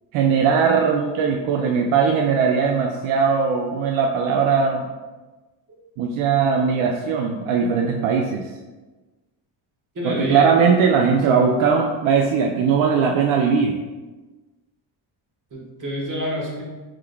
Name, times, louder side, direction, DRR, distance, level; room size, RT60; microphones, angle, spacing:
voice 1, 0.1-4.9 6.0-8.5 10.0-13.7, right 6 dB, 80° right, 1 dB, 0.5 m, -19 dB
voice 2, 9.9-10.6 11.3-11.4 15.5-16.6, equal, 40° right, -3 dB, 1.3 m, -28 dB
4.7 x 3.8 x 2.2 m, 1.2 s
cardioid pair, 100°, 48 cm